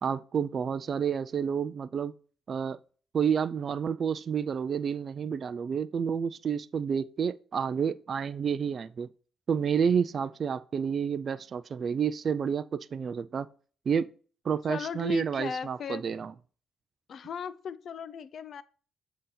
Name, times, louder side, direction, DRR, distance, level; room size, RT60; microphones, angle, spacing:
voice 1, 0.0-2.1 2.5-2.8 3.1-9.1 9.5-13.5 13.9-14.1 14.4-16.3, right 7 dB, 50° right, 0.3 m, -29 dB
voice 2, 14.7-16.0 17.1-18.6, left 7 dB, 60° left, 0.4 m, -37 dB
7.6 x 2.8 x 5.7 m
cardioid pair, 90°, 0 cm